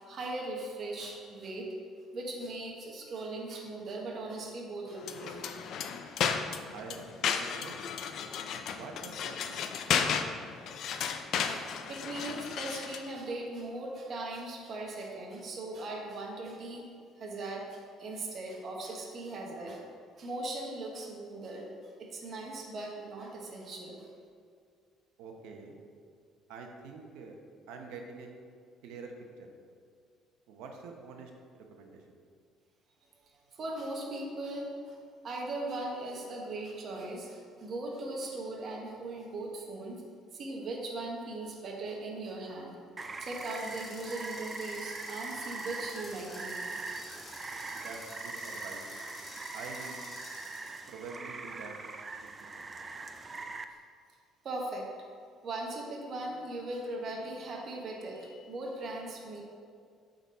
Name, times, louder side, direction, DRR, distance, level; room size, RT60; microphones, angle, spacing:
voice 1, 0.0-1.7 2.1-5.4 11.5-19.8 20.2-24.1 33.3-35.0 35.2-40.0 40.3-42.8 43.2-46.7 54.4-54.9 55.4-59.4, right 2 dB, 40° right, -1 dB, 1.1 m, -39 dB
sound 1, 5.0-13.1, left 7 dB, 55° left, 0.4 m, -34 dB
voice 2, 6.7-7.7 8.6-9.7 25.2-25.8 26.5-27.4 27.7-28.3 28.8-29.1 29.4-29.5 30.5-32.0 47.7-48.8 49.5-50.0 50.9-51.7 52.4-52.7, right 4 dB, 90° right, 2 dB, 0.9 m, -46 dB
Rain, 43.0-53.6, right 3 dB, 20° right, 0.3 m, -42 dB
sound 2, 43.2-51.0, left 2 dB, 25° left, 1.5 m, -49 dB
7.9 x 4.0 x 4.2 m, 2.2 s
cardioid pair, 145°, 0 cm